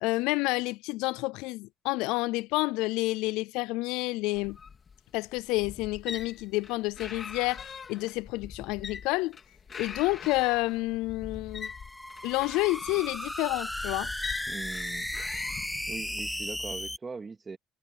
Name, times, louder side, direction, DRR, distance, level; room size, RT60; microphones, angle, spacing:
voice 1, 0.0-4.6 5.1-9.4 9.8-11.7 12.2-14.1, left 22 dB, 90° left, 0.3 m, -29 dB
sound 1, 4.3-16.1, left 6 dB, 45° left, 2.1 m, -43 dB
sound 2, 11.5-17.0, left 1 dB, 5° left, 0.6 m, -35 dB
voice 2, 14.5-15.1 15.9-17.6, right 4 dB, 30° right, 2.4 m, -40 dB
supercardioid pair, 75°, 0 cm